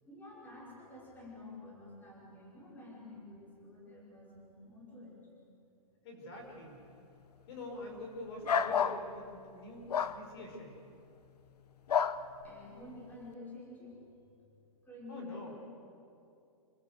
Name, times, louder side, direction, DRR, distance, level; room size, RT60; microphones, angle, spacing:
voice 1, 0.0-5.2 12.4-14.2 14.8-15.5, left 2 dB, 10° left, -4 dB, 5.4 m, -50 dB
voice 2, 6.0-6.8 7.5-10.8 15.1-15.5, left 1 dB, 40° left, 2 dB, 5.3 m, -45 dB
sound 1, 8.4-9.0 9.9-10.2 11.9-12.2, left 7 dB, 85° left, 1.1 m, -29 dB
27.0 x 22.0 x 8.2 m, 2.6 s
hypercardioid pair, 165°, 20 cm